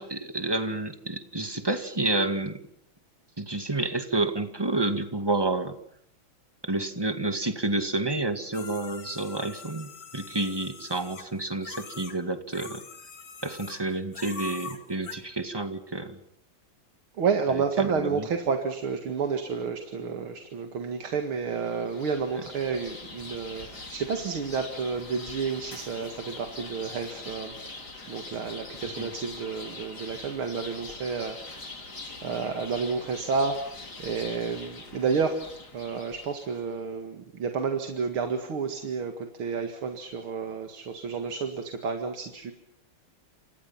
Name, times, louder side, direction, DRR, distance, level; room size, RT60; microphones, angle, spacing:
voice 1, 0.0-2.6 3.4-5.7 6.6-12.8 13.4-16.2 18.0-18.2 28.8-29.1, right 2 dB, 10° right, 8 dB, 1.9 m, -29 dB
sound 1, 8.5-12.2 12.5-13.9 14.1-15.2, left 5 dB, 65° left, 3.3 m, -43 dB
voice 2, 17.2-32.0 32.2-33.7 34.0-42.5, right 5 dB, 80° right, 6 dB, 2.8 m, -30 dB
sound 2, 21.5-36.6, left 3 dB, 50° left, 4.3 m, -43 dB
29.0 x 27.5 x 5.8 m, 0.67 s
omnidirectional pair, 2.3 m